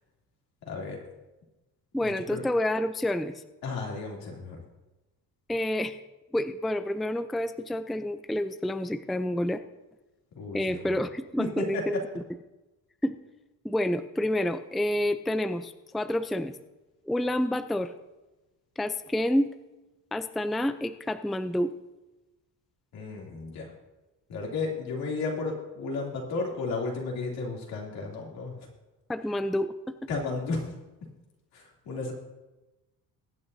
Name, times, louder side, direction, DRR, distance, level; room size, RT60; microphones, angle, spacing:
voice 1, 0.6-1.0 2.0-2.4 3.6-4.6 10.3-11.0 11.4-11.8 22.9-23.7 24.3-28.7 30.1-30.7 31.5-32.1, left 3 dB, 75° left, -2 dB, 2.9 m, -33 dB
voice 2, 1.9-3.3 5.5-6.0 6.3-9.6 10.5-12.0 13.0-13.2 13.6-16.5 17.1-17.9 18.8-19.5 20.1-21.7 29.1-30.0, left 1 dB, ahead, 10 dB, 0.4 m, -28 dB
21.5 x 8.8 x 2.7 m, 1.1 s
cardioid pair, 105°, 37 cm